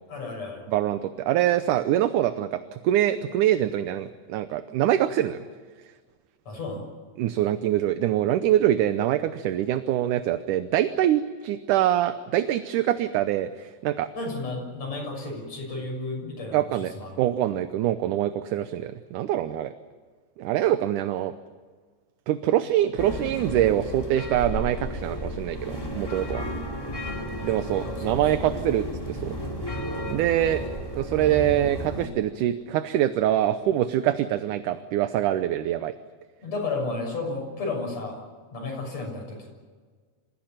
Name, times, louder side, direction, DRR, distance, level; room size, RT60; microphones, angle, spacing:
voice 1, 0.1-0.6 6.5-6.9 14.1-17.2 26.8-28.5 36.4-38.2 38.5-39.5, left 3 dB, 50° left, 0 dB, 7.7 m, -33 dB
voice 2, 0.7-5.4 7.2-14.1 16.5-19.7 20.4-21.3 22.3-26.4 27.4-29.4 30.1-30.6 30.9-36.0, right 12 dB, 75° right, 11 dB, 2.2 m, -24 dB
sound 1, 23.0-32.1, equal, 5° left, 2.9 m, -33 dB
26.5 x 16.5 x 9.0 m, 1.5 s
omnidirectional pair, 3.8 m